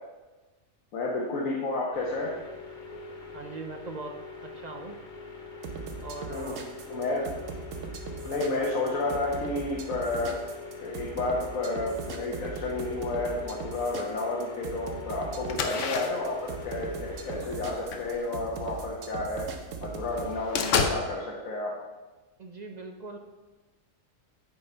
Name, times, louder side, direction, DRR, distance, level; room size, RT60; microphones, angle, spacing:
voice 1, 0.9-2.4 6.3-6.6 6.9-7.3 8.2-10.5 10.8-19.5 19.8-21.8, left 2 dB, 85° left, -3 dB, 1.4 m, -31 dB
sound 1, 1.9-17.4, left 3 dB, 40° left, 0.9 m, -43 dB
voice 2, 3.3-4.1 4.4-5.0 6.0-6.6 22.4-23.2, right 3 dB, 50° right, 4 dB, 0.5 m, -40 dB
sound 2, 5.6-20.3, right 5 dB, 75° right, 1.2 m, -39 dB
sound 3, 15.5-19.3 19.7-19.8 20.1-21.0, left 5 dB, 70° left, 1.1 m, -31 dB
8.6 x 4.7 x 5.5 m, 1.2 s
omnidirectional pair, 1.4 m